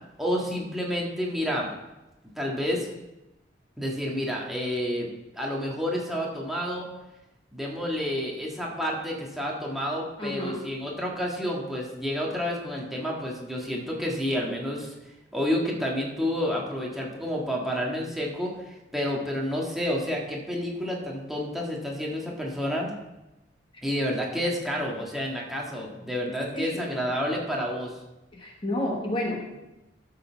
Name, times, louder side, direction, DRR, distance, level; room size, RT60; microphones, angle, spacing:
voice 1, 0.2-1.7 2.4-2.9 3.8-5.1 5.3-6.9 7.5-15.0 15.3-22.9 23.8-27.9, equal, ahead, -3 dB, 1.6 m, -29 dB
voice 2, 10.2-10.6 26.5-26.9 28.3-29.4, left 1 dB, 30° left, 0 dB, 1.2 m, -30 dB
13.0 x 6.5 x 4.5 m, 0.99 s
head